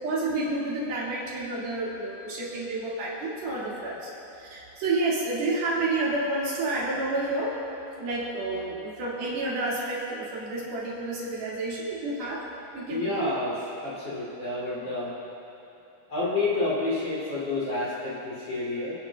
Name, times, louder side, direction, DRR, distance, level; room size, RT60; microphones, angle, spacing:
voice 1, 0.0-4.1 4.4-7.6 8.0-12.5 12.7-13.3, right 2 dB, 75° right, -7 dB, 4.5 m, -30 dB
voice 2, 12.9-13.5 13.8-15.1 16.1-18.9, left 2 dB, 30° left, -9 dB, 3.7 m, -29 dB
28.5 x 10.0 x 2.5 m, 2.9 s
omnidirectional pair, 4.3 m